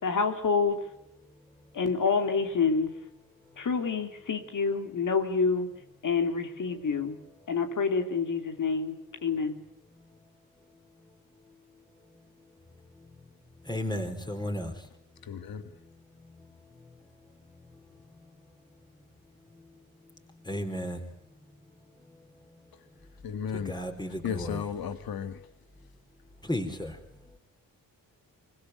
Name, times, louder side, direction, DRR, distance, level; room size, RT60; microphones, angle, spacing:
voice 1, 0.0-0.8 1.7-2.9 3.6-5.7 6.0-7.2 7.5-9.5, left 5 dB, 60° left, 6 dB, 2.9 m, -27 dB
voice 2, 13.6-14.8 15.8-15.9 16.2-16.5 19.5-19.7 20.4-21.1 23.5-24.7 26.4-27.0, left 1 dB, 10° left, 5 dB, 4.3 m, -34 dB
voice 3, 15.3-15.6 23.2-23.7 24.2-25.3, left 7 dB, 85° left, 11 dB, 1.8 m, -34 dB
25.0 x 21.5 x 8.3 m, 0.79 s
cardioid pair, 95°, 35 cm